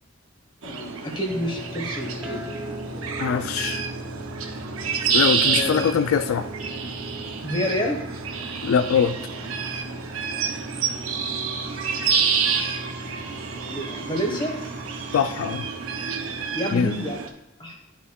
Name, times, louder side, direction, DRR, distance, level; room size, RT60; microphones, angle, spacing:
voice 1, 0.6-2.6 5.4-6.0 7.4-8.0 13.5-14.5 16.5-17.2 17.6-17.7, equal, 25° left, 1 dB, 1.2 m, -29 dB
sound 1, 0.6-17.3, right 6 dB, 85° right, 0.7 m, -29 dB
sound 2, 1.2-16.5, equal, 5° right, 1.4 m, -39 dB
voice 2, 3.2-3.8 5.1-6.5 8.6-9.2 15.1-15.7 16.7-16.9, left 7 dB, 80° left, 10 dB, 0.3 m, -22 dB
Screech, 10.8-16.3, right 4 dB, 60° right, 2.3 m, -42 dB
11.0 x 5.6 x 2.3 m, 0.91 s
head